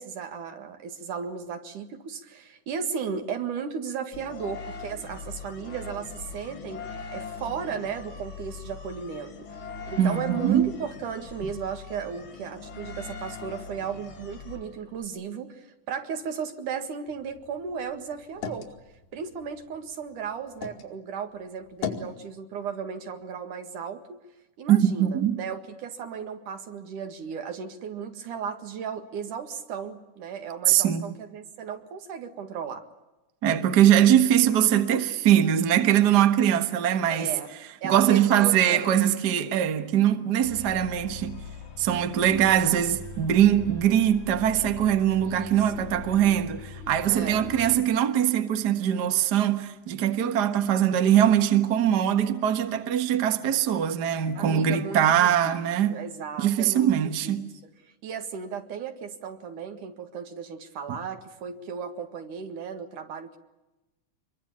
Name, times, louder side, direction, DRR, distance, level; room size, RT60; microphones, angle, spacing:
voice 1, 0.0-6.8 7.1-9.3 9.9-18.7 19.1-24.2 24.6-32.8 37.1-37.5 37.8-38.9 45.2-46.1 47.1-47.5 54.3-56.9 57.2-57.5 57.8-63.4, right 6 dB, 80° right, 3.4 m, -35 dB
sound 1, 4.1-15.0, left 5 dB, 45° left, 2.4 m, -41 dB
voice 2, 10.0-10.7 24.7-25.4 30.7-31.1 33.4-37.3 37.8-41.4 41.8-56.0 56.4-57.5, right 10 dB, 45° right, 1.5 m, -22 dB
sound 2, 17.1-20.9 21.3-22.2, left 7 dB, 80° left, 3.7 m, -39 dB
sound 3, 40.4-47.9, left 5 dB, 65° left, 5.9 m, -41 dB
26.0 x 23.0 x 8.7 m
omnidirectional pair, 3.6 m